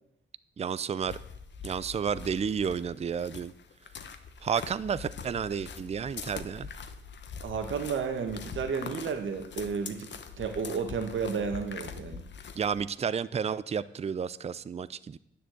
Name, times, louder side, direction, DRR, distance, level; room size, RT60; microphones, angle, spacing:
voice 1, 0.6-1.2 1.6-3.5 4.4-6.7 12.6-15.2, right 7 dB, 35° right, 17 dB, 0.4 m, -31 dB
sound 1, 1.0-12.9, left 6 dB, 65° left, 1.0 m, -43 dB
voice 2, 7.4-10.1 10.4-12.2, right 5 dB, 75° right, 5 dB, 1.4 m, -32 dB
10.0 x 6.9 x 7.8 m, 0.78 s
wide cardioid pair, 105°, 20 cm